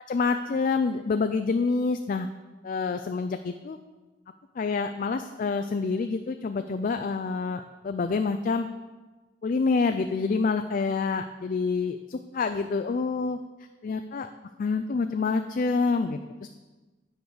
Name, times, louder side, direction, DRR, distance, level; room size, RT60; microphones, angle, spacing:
voice 1, 0.1-2.3 2.6-3.8 4.6-8.7 9.4-13.4 13.8-14.3 14.6-16.5, left 4 dB, 45° left, 8 dB, 0.4 m, -27 dB
9.3 x 5.0 x 6.2 m, 1.2 s
head